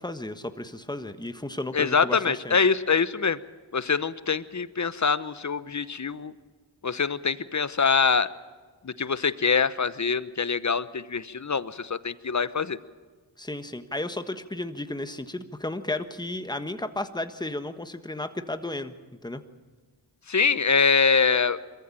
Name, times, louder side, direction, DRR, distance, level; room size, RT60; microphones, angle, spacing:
voice 1, 0.0-2.6 13.4-18.9 19.2-19.4, left 2 dB, 10° left, 9 dB, 1.4 m, -33 dB
voice 2, 1.7-3.4 3.7-6.3 6.8-8.3 8.8-12.8 20.3-21.6, left 5 dB, 35° left, 15 dB, 0.9 m, -24 dB
22.0 x 14.5 x 9.0 m, 1.4 s
cardioid pair, 45°, 48 cm